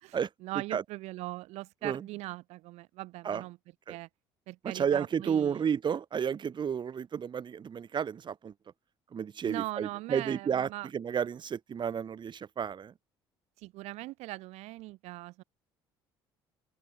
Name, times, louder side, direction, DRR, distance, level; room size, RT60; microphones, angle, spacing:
voice 1, 0.0-3.6 3.9-4.1 4.5-5.6 9.4-10.9 13.6-15.4, right 19 dB, 65° right, 1.1 m, -40 dB
voice 2, 4.7-8.5 9.1-12.9, right 7 dB, 40° right, 1.7 m, -31 dB
open air
hypercardioid pair, 55°, 12 cm